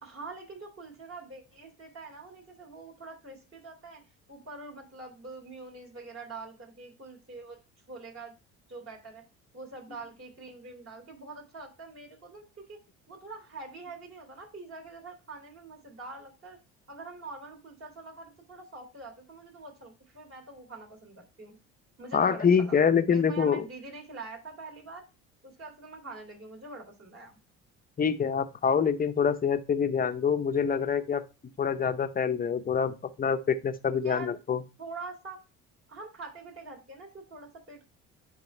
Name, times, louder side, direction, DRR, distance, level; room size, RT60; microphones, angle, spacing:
voice 1, 0.0-4.0 4.3-7.6 7.9-8.3 8.7-9.2 9.5-12.8 13.1-16.6 16.9-21.6 22.0-25.0 25.4-27.4 33.9-34.3 34.8-35.4 35.9-37.8, right 3 dB, 40° right, 1 dB, 3.1 m, -44 dB
voice 2, 22.1-23.6 28.0-31.2 31.6-34.6, left 6 dB, 25° left, 10 dB, 0.7 m, -26 dB
10.0 x 3.7 x 3.2 m, 0.30 s
supercardioid pair, 75°, 34 cm